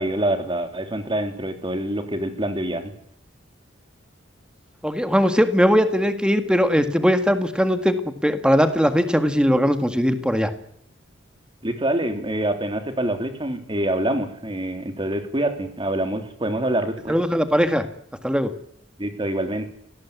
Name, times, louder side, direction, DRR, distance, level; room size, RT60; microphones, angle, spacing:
voice 1, 0.0-2.9 11.6-17.2 19.0-19.7, right 1 dB, 25° right, 7 dB, 3.2 m, -26 dB
voice 2, 4.8-8.0 8.2-10.5 17.1-17.8 18.2-18.5, equal, 5° right, 9 dB, 2.0 m, -19 dB
26.0 x 18.5 x 8.5 m, 0.67 s
head